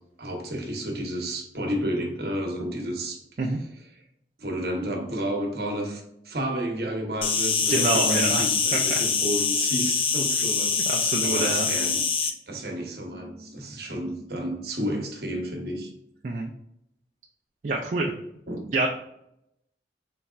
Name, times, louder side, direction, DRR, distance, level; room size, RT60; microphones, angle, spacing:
voice 1, 0.2-3.2 4.4-10.8 11.2-12.1 12.5-15.9 18.5-18.7, right 1 dB, 60° right, 1 dB, 1.0 m, -31 dB
Insect, 7.2-12.3, left 5 dB, 30° left, 0.3 m, -24 dB
voice 2, 7.7-8.5 8.7-9.0 10.9-11.7 16.2-16.5 17.6-18.1 18.7-18.9, right 2 dB, 45° right, 1 dB, 0.4 m, -26 dB
4.1 x 3.3 x 2.4 m, 0.79 s
head